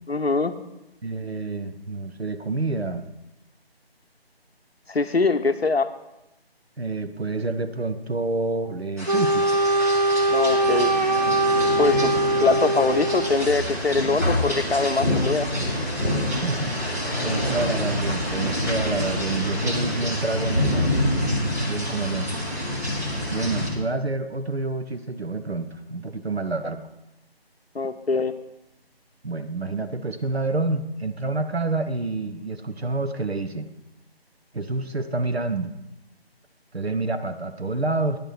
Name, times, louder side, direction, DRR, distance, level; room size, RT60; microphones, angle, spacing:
voice 1, 0.1-0.5 4.9-5.9 10.3-10.9 11.8-12.1 12.4-15.5 27.7-28.3, left 3 dB, 75° left, 10 dB, 0.7 m, -23 dB
voice 2, 1.0-3.1 6.8-9.5 16.3-21.0 21.7-22.3 23.3-26.8 29.2-33.7 34.5-35.7 36.7-38.2, right 3 dB, 80° right, 9 dB, 1.0 m, -28 dB
sound 1, 9.0-23.7, left 1 dB, 15° right, 1.0 m, -27 dB
Wind instrument woodwind instrument, 9.1-13.7, right 1 dB, 45° right, 0.5 m, -22 dB
10.0 x 9.3 x 4.4 m, 0.91 s
figure-of-eight pair, 160°, 31 cm